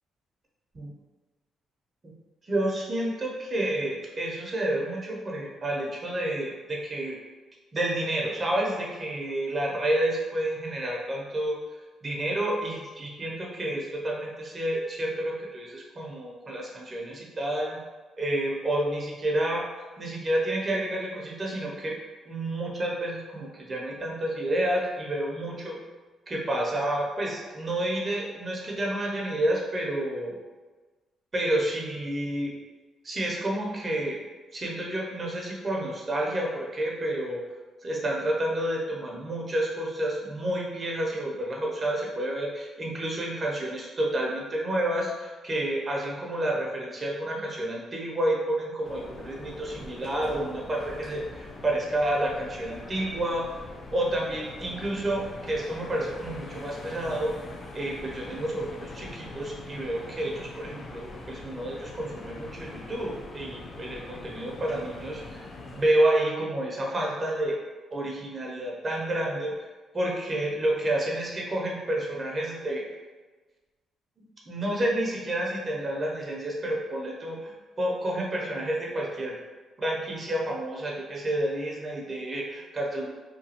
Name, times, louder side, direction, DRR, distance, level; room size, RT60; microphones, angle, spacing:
voice 1, 2.5-7.1 7.7-11.6 12.0-17.8 18.2-19.6 20.0-21.9 22.3-25.7 26.3-30.3 31.3-32.5 33.0-34.2 34.5-37.4 37.8-53.5 53.9-57.3 57.7-65.5 65.7-67.6 67.9-69.7 69.9-72.8 74.5-79.4 79.8-83.1, right 1 dB, 35° right, -2 dB, 0.6 m, -29 dB
sound 1, 48.8-65.9, left 2 dB, 45° left, 0.4 m, -43 dB
2.9 x 2.2 x 2.8 m, 1.3 s
cardioid pair, 90°, 0 cm